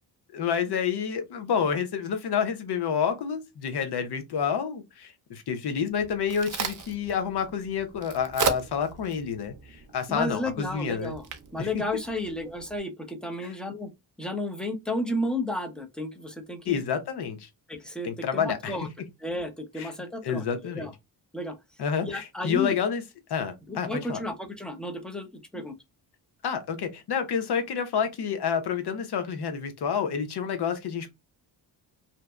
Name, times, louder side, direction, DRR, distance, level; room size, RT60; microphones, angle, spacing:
voice 1, 0.3-11.1 11.6-11.8 13.4-13.5 16.6-17.5 18.0-18.8 19.8-19.9 20.2-20.9 21.8-23.0 23.3-24.2 26.4-31.1, left 7 dB, 60° left, 0.8 m, -29 dB
Crack, 5.9-12.8, right 6 dB, 45° right, 0.6 m, -36 dB
voice 2, 10.1-11.2 11.5-13.9 14.2-16.8 17.7-18.9 19.2-20.4 20.7-20.9 21.3-21.6 22.0-22.7 23.7-25.3 25.5-25.8, left 1 dB, ahead, 0.7 m, -32 dB
2.7 x 2.1 x 2.3 m
supercardioid pair, 60°, 45 cm